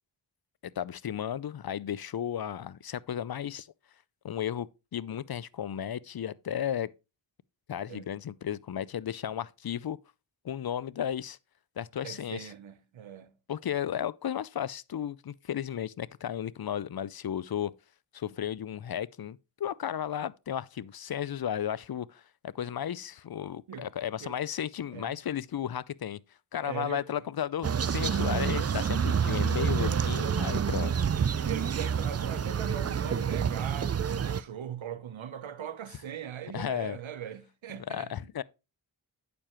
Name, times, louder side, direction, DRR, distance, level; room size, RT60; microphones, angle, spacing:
voice 1, 0.6-3.7 4.2-6.9 7.7-10.0 10.4-11.4 11.8-12.5 13.5-17.7 18.1-26.2 26.5-30.9 36.5-37.0 37.9-38.4, left 9 dB, 50° left, 0.5 m, -34 dB
voice 2, 12.0-13.3 23.7-23.9 24.2-24.4 24.9-25.1 26.6-27.0 29.8-30.1 30.7-38.1, right 9 dB, 80° right, 0.8 m, -40 dB
sound 1, 27.6-34.4, right 7 dB, 35° right, 0.4 m, -28 dB
sound 2, 28.4-33.9, left 1 dB, 20° left, 4.0 m, -51 dB
8.6 x 6.9 x 3.0 m
cardioid pair, 40°, 46 cm